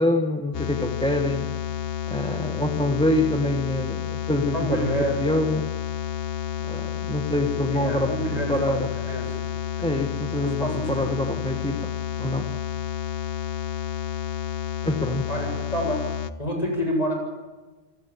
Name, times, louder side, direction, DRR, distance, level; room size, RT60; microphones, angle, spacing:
voice 1, 0.0-1.5 2.1-5.7 6.7-8.9 9.8-12.5 14.8-15.3, left 1 dB, 5° left, 4 dB, 1.5 m, -26 dB
sound 1, 0.5-16.3, left 9 dB, 65° left, 1.2 m, -30 dB
voice 2, 4.5-5.2 7.7-8.8 9.1-9.3 10.4-11.0 15.3-16.0 16.4-17.1, equal, 35° left, 2 dB, 7.7 m, -28 dB
26.5 x 18.0 x 7.4 m, 1.2 s
omnidirectional pair, 1.1 m